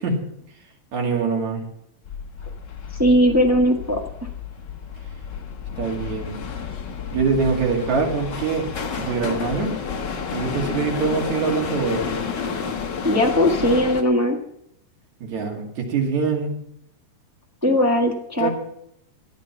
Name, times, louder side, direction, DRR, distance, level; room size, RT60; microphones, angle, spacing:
voice 1, 0.9-1.6 5.8-6.4 7.1-8.7 9.0-9.7 10.3-12.1 15.2-16.6 18.4-18.5, right 5 dB, 75° right, 1 dB, 3.5 m, -24 dB
sound 1, 2.0-14.0, left 6 dB, 50° left, 1.4 m, -30 dB
voice 2, 3.0-4.0 13.0-14.4 17.6-18.5, equal, 20° right, 0 dB, 0.4 m, -18 dB
14.0 x 9.1 x 5.7 m, 0.76 s
omnidirectional pair, 3.4 m